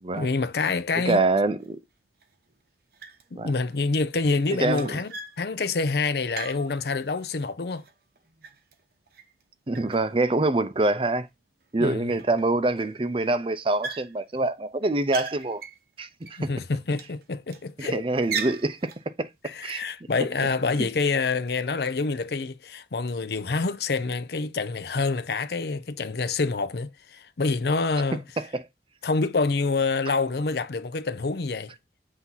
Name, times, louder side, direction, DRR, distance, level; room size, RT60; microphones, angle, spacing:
voice 1, 0.1-1.2 3.4-5.1 5.4-7.8 11.8-12.1 16.4-18.0 19.4-28.2 29.0-31.7, left 4 dB, 60° left, 0.6 m, -27 dB
voice 2, 0.9-1.8 3.4-3.5 4.6-5.0 9.7-11.3 11.7-15.6 16.0-16.5 17.8-18.9 19.2-19.8 28.4-28.7, right 2 dB, 30° right, 0.6 m, -25 dB
sound 1, 1.6-1.7 2.2-2.6 2.9-3.4 3.7-7.3 7.7-9.4 9.7-10.7 11.3-11.4 11.6-11.7 12.1-12.8 13.1-13.3 13.8-14.5 14.8-16.5 16.9-17.7 18.1-19.1, right 5 dB, 55° right, 0.9 m, -39 dB
8.2 x 2.8 x 5.6 m
head